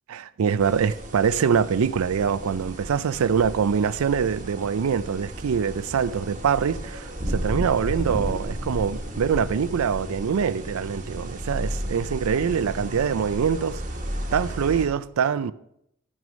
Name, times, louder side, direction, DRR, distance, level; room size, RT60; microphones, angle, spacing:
voice 1, 0.1-13.8 14.3-15.5, right 7 dB, 80° right, 0.4 m, -24 dB
sound 1, 0.6-14.9, right 1 dB, 40° right, 1.3 m, -33 dB
11.0 x 6.3 x 5.1 m
head